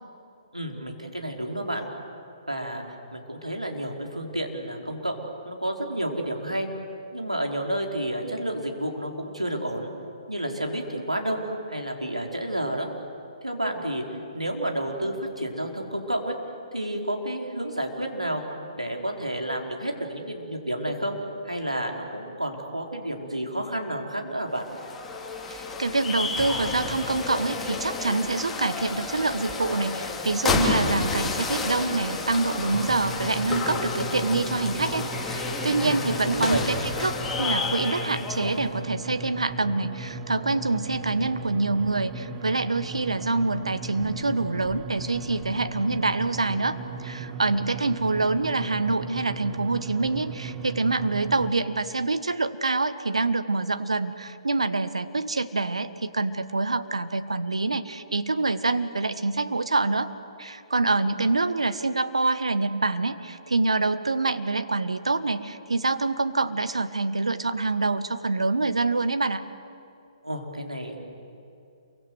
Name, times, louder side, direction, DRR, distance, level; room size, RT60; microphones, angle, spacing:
voice 1, 0.5-1.9 2.5-2.8 3.1-5.2 5.5-6.7 7.1-9.9 10.3-12.9 13.4-14.0 14.3-16.3 16.7-21.2 21.4-24.7 35.8-36.6 70.2-71.0, right 1 dB, 90° right, 1 dB, 4.3 m, -30 dB
sound 1, 24.6-38.7, left 3 dB, 10° left, 3.4 m, -30 dB
voice 2, 25.5-60.1 60.4-69.4, right 3 dB, 75° right, 11 dB, 1.5 m, -26 dB
sound 2, 32.7-51.5, right 2 dB, 20° right, 1.7 m, -37 dB
28.5 x 24.0 x 7.9 m, 2.6 s
figure-of-eight pair, 130°, 3 cm